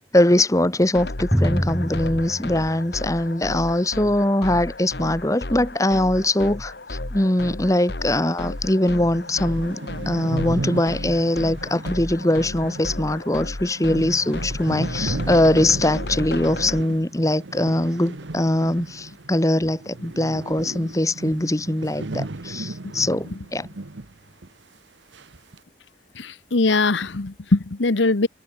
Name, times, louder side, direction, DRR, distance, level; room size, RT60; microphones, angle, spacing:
voice 1, 0.1-9.8 10.1-23.7, left 1 dB, 20° left, 1.3 m, -22 dB
sound 1, 0.9-16.8, left 2 dB, 60° left, 1.8 m, -33 dB
Drum, 1.3-3.7, equal, ahead, 0.9 m, -26 dB
sound 2, 8.5-8.6 8.9-9.0 9.2-19.4 19.6-24.1 24.4-24.5 25.1-25.6, right 2 dB, 80° right, 1.2 m, -34 dB
voice 2, 26.2-28.3, left 3 dB, 85° left, 1.1 m, -21 dB
head